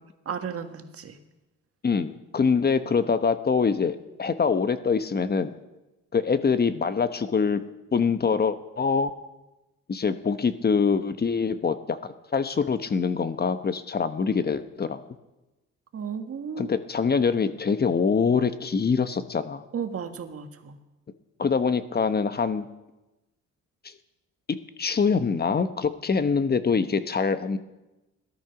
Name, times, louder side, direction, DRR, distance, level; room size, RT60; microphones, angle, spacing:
voice 1, 0.3-1.2 15.9-16.7 19.7-20.8, right 7 dB, 50° right, 6 dB, 1.7 m, -34 dB
voice 2, 1.8-5.5 6.1-7.6 7.9-9.1 9.9-15.0 16.6-19.6 21.4-22.7 24.8-27.6, left 5 dB, 30° left, 11 dB, 1.0 m, -24 dB
17.5 x 13.0 x 5.9 m, 1.0 s
cardioid pair, 90°, 30 cm